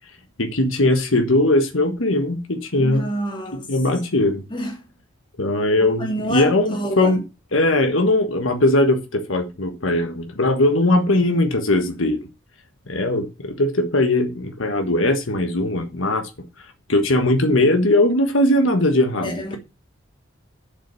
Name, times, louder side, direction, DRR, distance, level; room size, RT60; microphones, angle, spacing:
voice 1, 0.4-3.1 3.7-4.4 5.4-7.2 7.5-12.2 12.9-19.6, left 1 dB, 75° left, 1.5 m, -20 dB
voice 2, 2.8-3.7 4.5-4.8 6.0-7.2 19.2-19.6, equal, 25° left, 2.6 m, -28 dB
7.7 x 6.9 x 7.0 m
head